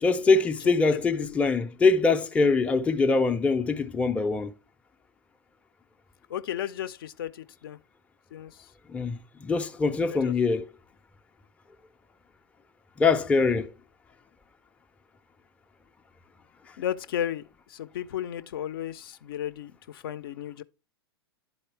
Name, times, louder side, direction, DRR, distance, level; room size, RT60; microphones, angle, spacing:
voice 1, 0.0-4.5 8.9-10.6 13.0-13.7, left 4 dB, 10° left, 0.4 m, -23 dB
voice 2, 6.3-7.8 8.3-8.7 10.1-10.3 16.8-20.6, left 10 dB, 60° left, 0.5 m, -34 dB
11.0 x 4.2 x 3.3 m
hypercardioid pair, 105°, 13 cm